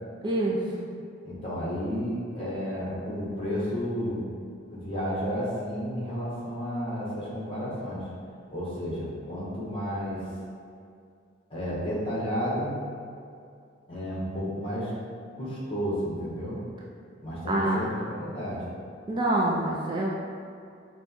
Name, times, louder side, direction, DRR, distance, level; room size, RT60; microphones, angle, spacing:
voice 1, 0.2-0.9 17.5-17.8 19.1-20.2, right 1 dB, 25° right, -3 dB, 0.3 m, -26 dB
voice 2, 1.2-4.2 4.7-8.1 8.5-10.2 11.5-12.8 13.9-14.9 15.3-16.6 17.2-18.6, equal, 30° left, -7 dB, 1.1 m, -32 dB
6.1 x 2.2 x 2.9 m, 2.3 s
head